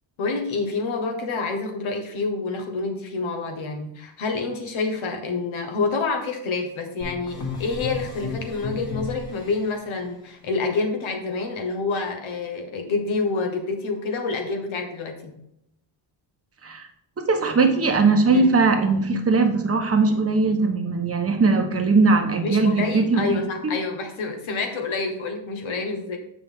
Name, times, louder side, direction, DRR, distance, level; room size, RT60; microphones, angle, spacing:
voice 1, 0.2-15.4 18.3-18.5 22.4-26.2, left 3 dB, 75° left, 3 dB, 1.6 m, -28 dB
sound 1, 7.0-9.7, left 4 dB, 45° left, 2.1 m, -33 dB
voice 2, 17.2-23.4, right 3 dB, 30° right, 4 dB, 1.1 m, -20 dB
7.6 x 6.0 x 3.6 m, 0.78 s
cardioid pair, 125°, 48 cm